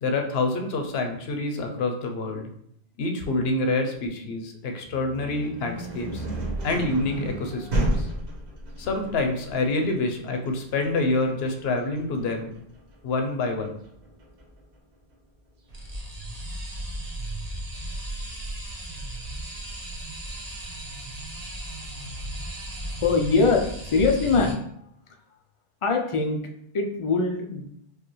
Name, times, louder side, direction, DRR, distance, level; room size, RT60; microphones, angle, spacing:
voice 1, 0.0-2.5 3.0-6.2 6.6-8.1 8.8-12.5 13.0-13.7, left 2 dB, 70° left, 4 dB, 0.9 m, -27 dB
sound 1, 4.8-14.6, right 1 dB, 85° right, 1.3 m, -32 dB
sound 2, 15.7-24.5, right 1 dB, 40° right, 0.9 m, -35 dB
voice 2, 23.0-24.6 25.8-26.4 26.7-27.7, left 4 dB, 55° left, 3 dB, 0.3 m, -22 dB
4.8 x 2.3 x 3.0 m, 0.70 s
omnidirectional pair, 1.1 m